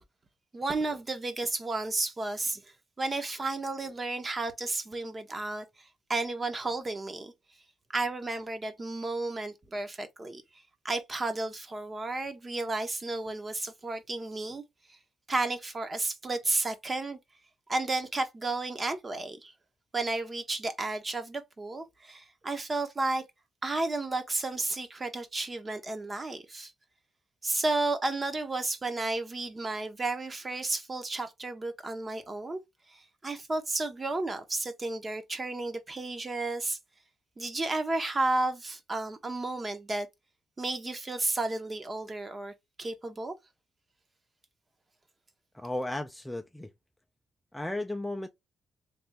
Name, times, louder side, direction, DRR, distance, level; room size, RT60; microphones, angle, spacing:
voice 1, 0.5-2.6 3.0-5.6 6.1-7.3 7.9-10.4 10.8-14.6 14.9-15.0 15.3-17.2 17.7-19.5 19.9-23.2 23.6-26.7 27.4-32.6 32.9-36.8 37.4-40.1 40.6-43.3, right 2 dB, 25° right, 0.8 m, -32 dB
voice 2, 45.5-46.7 47.5-48.3, left 1 dB, 5° left, 0.4 m, -34 dB
3.4 x 2.5 x 3.0 m
cardioid pair, 100°, 0 cm